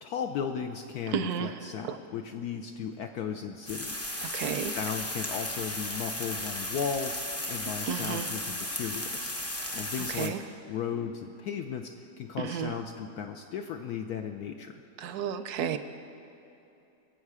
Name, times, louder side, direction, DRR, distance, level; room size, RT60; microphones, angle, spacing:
voice 1, 0.0-4.1 4.7-9.4 9.7-10.4 10.7-14.7, left 7 dB, 70° left, 5 dB, 1.0 m, -36 dB
voice 2, 1.1-1.5 1.8-2.0 4.3-4.8 7.8-8.3 10.1-10.4 12.4-12.7 15.0-15.8, right 8 dB, 70° right, 10 dB, 1.0 m, -32 dB
sound 1, 3.7-10.3, left 1 dB, 20° left, 0.4 m, -35 dB
22.0 x 7.4 x 4.8 m, 2.9 s
omnidirectional pair, 1.9 m